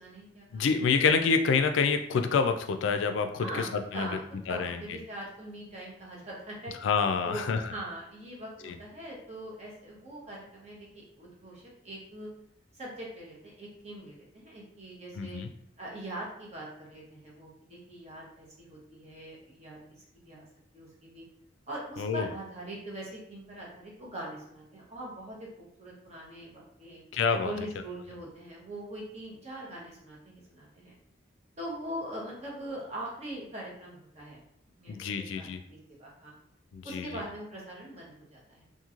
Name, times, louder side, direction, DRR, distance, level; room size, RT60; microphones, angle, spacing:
voice 1, 0.0-0.9 3.4-3.7 3.9-4.2 4.5-6.7 7.2-12.3 12.7-15.4 15.8-19.8 20.1-20.5 20.7-21.2 21.7-27.0 27.4-30.9 31.6-34.4 34.8-35.5 36.0-36.3 36.8-38.6, right 1 dB, 35° right, -4 dB, 0.9 m, -42 dB
voice 2, 0.5-4.2 4.5-4.8 6.8-7.7 8.6-8.8 15.2-15.5 22.0-22.3 27.1-27.5 34.9-35.6 36.7-37.2, left 5 dB, 70° left, 7 dB, 0.3 m, -27 dB
3.0 x 2.6 x 2.4 m, 0.73 s
head